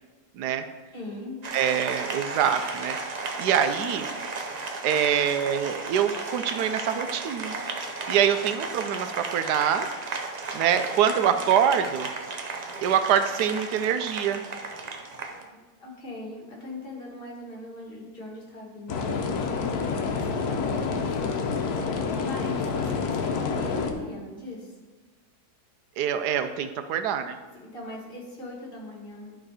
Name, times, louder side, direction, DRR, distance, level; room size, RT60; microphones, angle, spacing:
voice 1, 0.9-1.4 15.5-19.3 20.2-21.5 21.9-24.7 27.5-29.4, left 2 dB, 35° left, -3 dB, 1.8 m, -40 dB
Applause, 1.4-15.4, right 3 dB, 65° right, 0.4 m, -34 dB
voice 2, 1.5-3.0 3.4-4.1 4.8-7.5 8.1-9.9 10.5-12.1 12.8-14.4 20.1-20.5 26.0-27.4, right 8 dB, 85° right, 9 dB, 1.2 m, -25 dB
sound 1, 18.9-23.9, left 5 dB, 75° left, 1.3 m, -28 dB
11.0 x 3.8 x 4.8 m, 1.3 s
omnidirectional pair, 1.7 m